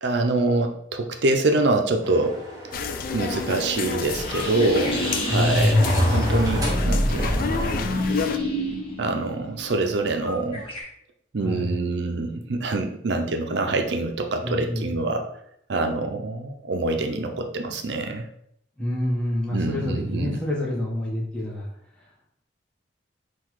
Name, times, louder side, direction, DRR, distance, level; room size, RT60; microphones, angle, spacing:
voice 1, 0.0-2.4 3.1-5.8 6.1-8.0 9.0-10.6 11.3-15.3 15.7-18.3 19.5-20.4, right 2 dB, 70° right, 5 dB, 0.5 m, -25 dB
sound 1, 2.0-7.9, equal, 20° right, 0.9 m, -33 dB
sound 2, 2.7-8.4, left 6 dB, 50° left, 0.3 m, -31 dB
sound 3, 4.1-10.8, left 1 dB, 30° left, 1.1 m, -25 dB
voice 2, 5.3-5.8 11.4-11.9 14.4-14.9 18.8-21.7, left 1 dB, 5° left, -5 dB, 1.0 m, -27 dB
3.8 x 2.4 x 4.6 m, 0.74 s
head